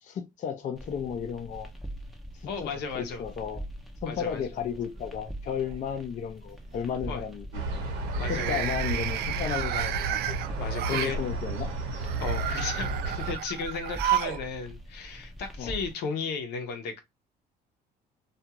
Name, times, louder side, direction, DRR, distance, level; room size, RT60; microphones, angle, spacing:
voice 1, 0.0-1.7 2.4-3.6 4.0-7.6 8.3-10.3 10.9-11.7 15.6-15.8, left 7 dB, 45° left, 0.6 m, -33 dB
sound 1, 0.8-15.9, right 1 dB, ahead, 0.6 m, -43 dB
voice 2, 2.5-3.2 4.1-4.5 7.1-7.2 8.2-8.7 10.6-11.2 12.2-17.0, left 5 dB, 80° left, 0.8 m, -35 dB
sound 2, 4.6-5.2 5.6-6.0 8.1-11.2 12.0-14.4 14.7-14.8 15.9-16.0, right 12 dB, 70° right, 0.4 m, -32 dB
sound 3, 7.5-13.4, right 2 dB, 85° right, 0.9 m, -33 dB
2.5 x 2.4 x 2.8 m
cardioid pair, 110°, 17 cm